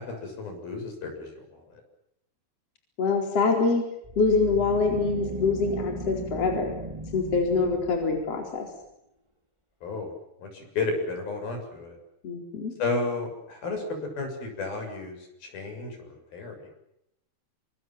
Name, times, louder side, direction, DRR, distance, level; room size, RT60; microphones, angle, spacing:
voice 1, 0.0-1.8 9.8-10.1 10.4-12.0 12.8-13.8 14.2-16.6, left 3 dB, 65° left, 5 dB, 8.8 m, -33 dB
voice 2, 3.0-3.8 4.2-6.7 7.1-8.7 12.2-12.7, left 4 dB, 40° left, 3 dB, 5.1 m, -25 dB
sound 1, 4.0-8.4, right 2 dB, 10° right, 2.5 m, -37 dB
28.5 x 26.0 x 7.7 m, 0.81 s
omnidirectional pair, 4.5 m